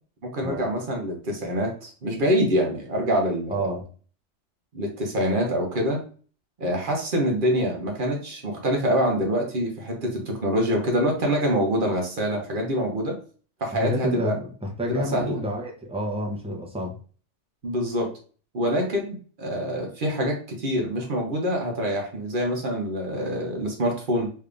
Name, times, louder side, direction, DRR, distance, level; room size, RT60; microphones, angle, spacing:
voice 1, 0.2-3.8 4.7-6.0 6.6-13.2 13.6-14.3 14.9-15.4 17.6-18.1 18.5-24.3, equal, 45° right, 1 dB, 0.9 m, -25 dB
voice 2, 3.5-3.9 13.7-16.9, equal, 10° right, 0 dB, 0.3 m, -29 dB
3.4 x 3.3 x 2.4 m, 0.41 s
omnidirectional pair, 1.4 m